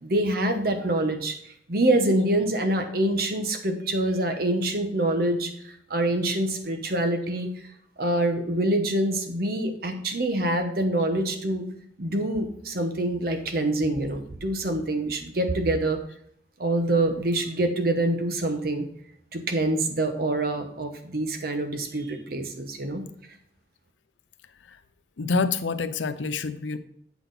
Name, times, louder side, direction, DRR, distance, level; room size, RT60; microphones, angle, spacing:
voice 1, 0.0-7.5 8.0-11.7 12.0-16.0 16.6-18.9 19.3-23.0, right 1 dB, 55° right, 6 dB, 1.0 m, -26 dB
voice 2, 25.2-26.8, left 4 dB, 85° left, 12 dB, 0.6 m, -27 dB
8.1 x 5.9 x 4.0 m, 0.69 s
head